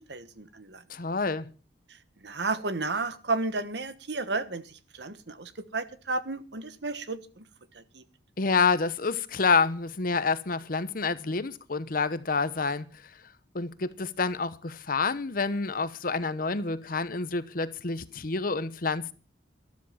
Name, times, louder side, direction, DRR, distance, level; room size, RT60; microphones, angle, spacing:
voice 1, 0.0-0.8 1.9-7.5 7.7-8.0, right 3 dB, 65° right, 1.3 m, -33 dB
voice 2, 0.9-1.5 8.4-13.1 13.5-19.1, left 4 dB, 50° left, 0.9 m, -28 dB
13.0 x 12.5 x 5.7 m
head